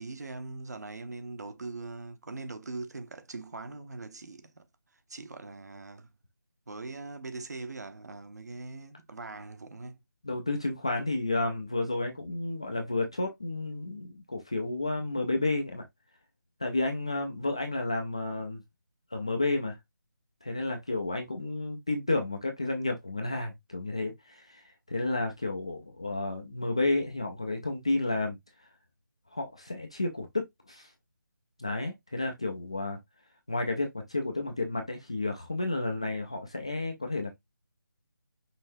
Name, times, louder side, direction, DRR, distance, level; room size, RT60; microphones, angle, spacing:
voice 1, 0.0-4.7 5.1-6.1 6.7-10.0, right 3 dB, 50° right, 0.9 m, -41 dB
voice 2, 10.2-15.9 16.6-18.6 19.1-19.8 20.4-28.4 29.3-30.9 31.6-33.0 33.5-37.4, left 2 dB, 15° left, 0.3 m, -31 dB
5.6 x 3.3 x 2.6 m
figure-of-eight pair, 175°, 11 cm